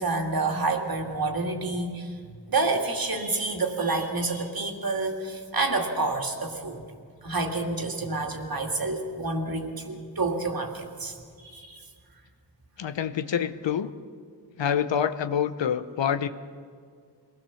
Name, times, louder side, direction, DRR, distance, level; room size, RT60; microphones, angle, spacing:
voice 1, 0.0-2.1 2.5-6.8 7.2-11.1 11.4-11.8, right 3 dB, 55° right, 3 dB, 2.3 m, -28 dB
voice 2, 12.8-13.9 14.6-16.3, left 8 dB, 85° left, 11 dB, 0.8 m, -26 dB
22.5 x 17.0 x 7.0 m, 2.1 s
wide cardioid pair, 70°, 43 cm